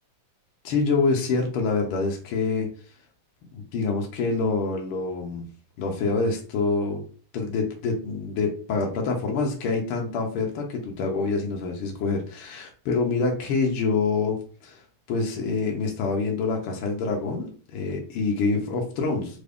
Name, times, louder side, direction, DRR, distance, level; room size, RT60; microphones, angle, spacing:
voice 1, 0.6-2.7 3.5-5.4 5.8-7.0 7.3-14.4 14.6-14.8 15.1-19.4, left 4 dB, 75° left, 1 dB, 1.2 m, -26 dB
4.6 x 2.5 x 3.4 m, 0.42 s
omnidirectional pair, 3.4 m